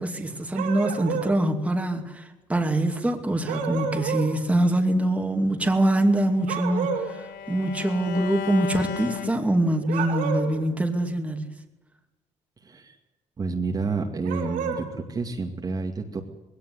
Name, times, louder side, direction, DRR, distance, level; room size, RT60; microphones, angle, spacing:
voice 1, 0.0-11.5, right 1 dB, 10° right, 3 dB, 2.6 m, -24 dB
sound 1, 0.5-1.3 3.5-4.3 6.5-7.1 9.8-10.6 14.2-14.8, right 6 dB, 80° right, 5.0 m, -29 dB
Bowed string instrument, 5.8-10.0, left 8 dB, 90° left, 1.4 m, -36 dB
voice 2, 12.6-13.0 13.4-16.2, right 4 dB, 30° right, 2 dB, 2.3 m, -29 dB
20.5 x 17.5 x 9.7 m, 1.1 s
cardioid pair, 125°, 14 cm